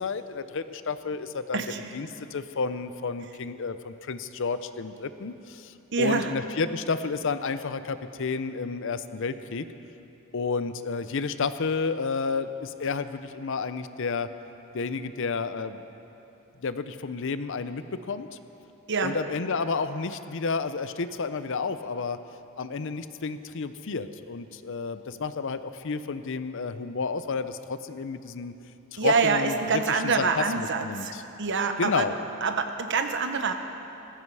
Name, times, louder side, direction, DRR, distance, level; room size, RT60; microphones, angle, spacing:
voice 1, 0.0-1.6 1.9-9.7 10.3-14.3 14.7-15.8 16.6-18.3 19.0-22.2 22.6-28.5 28.9-31.2 31.8-32.1, left 4 dB, 60° left, 12 dB, 0.6 m, -31 dB
voice 2, 1.5-1.8 5.9-6.3 18.9-19.2 29.0-31.1 31.4-32.1 32.4-33.5, right 4 dB, 55° right, 7 dB, 1.0 m, -26 dB
18.5 x 15.5 x 4.8 m, 2.9 s
head